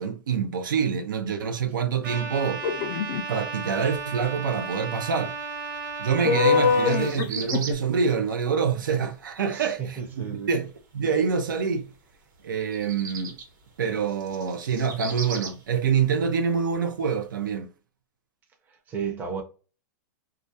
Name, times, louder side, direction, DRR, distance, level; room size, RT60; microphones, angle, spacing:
voice 1, 0.0-2.6 3.3-5.3 6.0-10.7 10.9-11.9 12.4-13.4 13.8-17.7, right 6 dB, 90° right, 0.5 m, -26 dB
Trumpet, 2.0-7.1, right 4 dB, 40° right, 0.8 m, -34 dB
sound 1, 2.6-3.2 6.2-7.7, left 6 dB, 40° left, 0.3 m, -23 dB
sound 2, 2.6-17.6, right 5 dB, 70° right, 1.1 m, -42 dB
voice 2, 9.5-10.5 18.9-19.4, right 7 dB, 15° right, 0.5 m, -33 dB
2.3 x 2.1 x 2.6 m
hypercardioid pair, 145°, 10 cm